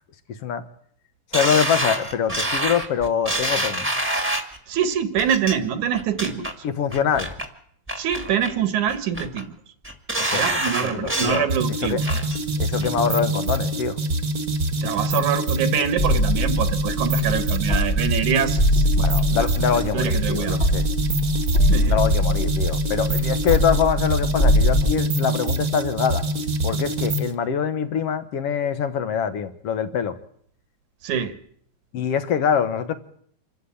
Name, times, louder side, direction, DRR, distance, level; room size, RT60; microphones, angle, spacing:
voice 1, 1.3-3.9 6.6-7.3 10.3-11.5 11.8-12.0 12.6-14.0 19.0-20.9 21.9-26.2 26.6-30.2 31.9-32.9, left 7 dB, 60° left, 11 dB, 2.1 m, -24 dB
sound 1, 1.3-4.6 5.2-5.5 5.9-6.5 6.9-7.5 7.9-8.5 8.9-9.4 9.8-11.4 11.8-12.4 12.8-12.9, right 1 dB, 5° right, 1.4 m, -26 dB
voice 2, 4.7-6.5 8.0-9.5 10.2-12.0 14.8-18.9 19.4-19.5 19.9-20.6 21.7-22.0 31.0-31.4, right 8 dB, 80° right, 11 dB, 2.8 m, -25 dB
sound 2, 11.5-27.3, right 1 dB, 35° right, 1.5 m, -25 dB
sound 3, 16.0-25.0, left 1 dB, 30° left, 1.4 m, -23 dB
26.0 x 13.5 x 8.5 m, 0.65 s
omnidirectional pair, 3.4 m